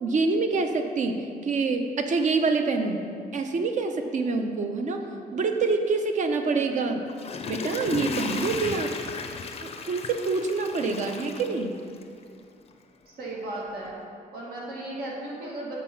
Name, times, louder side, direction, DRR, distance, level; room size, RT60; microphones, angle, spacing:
voice 1, 0.0-3.0 3.3-5.0 5.3-7.0 7.5-8.9 9.6-11.7, right 4 dB, 50° right, 6 dB, 0.6 m, -26 dB
Water / Toilet flush, 6.9-12.2 12.7-12.8, left 4 dB, 40° left, 0.5 m, -35 dB
voice 2, 13.1-14.0 14.3-15.8, right 1 dB, 80° right, -4 dB, 1.7 m, -36 dB
7.4 x 4.1 x 5.7 m, 2.3 s
cardioid pair, 135°, 16 cm